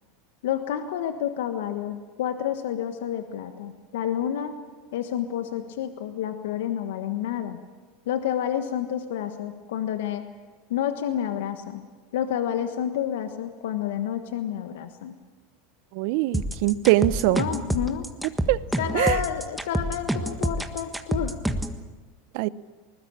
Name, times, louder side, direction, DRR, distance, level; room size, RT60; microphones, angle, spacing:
voice 1, 0.4-4.6 4.9-7.6 8.1-10.2 10.7-11.8 12.1-15.1 17.3-18.1 18.8-21.4, left 10 dB, 75° left, 8 dB, 1.4 m, -29 dB
voice 2, 15.9-17.5 18.5-18.6 18.9-19.2 22.3-22.5, right 17 dB, 60° right, 19 dB, 0.7 m, -22 dB
sound 1, 16.3-21.8, right 1 dB, 5° right, 1.6 m, -27 dB
20.5 x 20.0 x 8.7 m, 1.4 s
hypercardioid pair, 95°, 0 cm